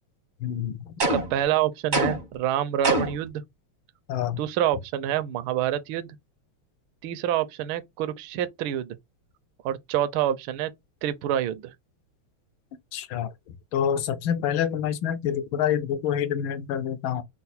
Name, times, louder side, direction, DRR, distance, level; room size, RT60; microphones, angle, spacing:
voice 1, 0.4-1.0 4.1-4.4 12.9-17.2, left 9 dB, 75° left, 1.3 m, -27 dB
sound 1, 1.0-1.4 1.9-2.4 2.8-3.3, right 1 dB, 50° right, 0.5 m, -25 dB
voice 2, 1.0-3.4 4.4-6.2 7.0-9.0 9.6-10.7 11.0-11.7, right 11 dB, 75° right, 1.3 m, -27 dB
4.4 x 2.1 x 4.1 m
omnidirectional pair, 2.4 m